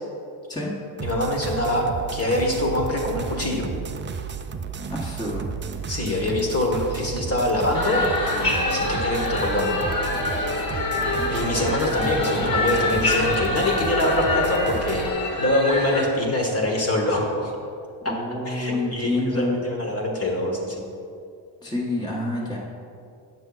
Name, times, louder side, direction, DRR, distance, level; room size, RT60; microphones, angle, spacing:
voice 1, 1.0-1.8 2.1-3.7 5.9-9.8 11.3-17.5 18.5-20.8, left 1 dB, 30° left, 0 dB, 1.5 m, -24 dB
sound 1, 1.0-15.1, right 6 dB, 25° right, 0.4 m, -33 dB
voice 2, 4.9-5.5 11.2-11.3 18.1-19.6 21.6-22.6, left 2 dB, 10° left, -4 dB, 1.2 m, -27 dB
sound 2, 7.7-16.0, left 2 dB, 45° left, 1.6 m, -26 dB
7.6 x 5.9 x 3.9 m, 2.5 s
supercardioid pair, 70°, 48 cm